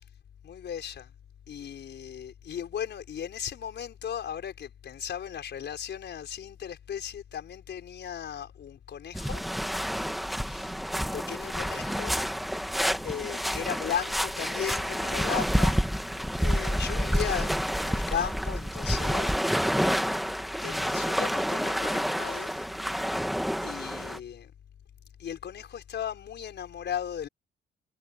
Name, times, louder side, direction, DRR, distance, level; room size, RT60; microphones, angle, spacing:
voice 1, 0.4-1.1 1.5-9.4 10.4-12.2 13.0-15.8 16.4-19.4 19.7-20.1 20.6-23.2 23.6-24.5 25.2-27.3, left 9 dB, 60° left, 5.5 m, -36 dB
sound 1, 9.1-24.2, equal, ahead, 1.8 m, -29 dB
cardioid pair, 90°, 20 cm